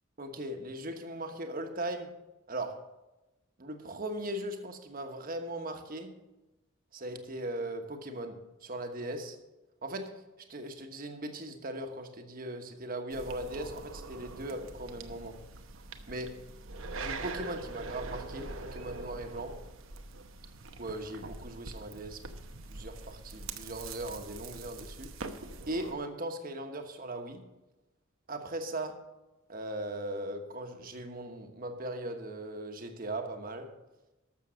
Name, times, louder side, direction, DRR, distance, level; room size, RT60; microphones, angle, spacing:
voice 1, 0.2-2.1 2.5-2.8 3.6-6.2 6.9-9.4 9.8-10.2 10.5-15.4 16.1-16.4 17.0-19.5 20.8-22.2 22.7-25.1 25.7-27.4 28.3-29.0 29.5-33.7, right 1 dB, 45° right, 5 dB, 1.3 m, -39 dB
sound 1, 13.1-25.9, right 3 dB, 85° right, 1.0 m, -43 dB
13.0 x 6.9 x 6.3 m, 1.0 s
head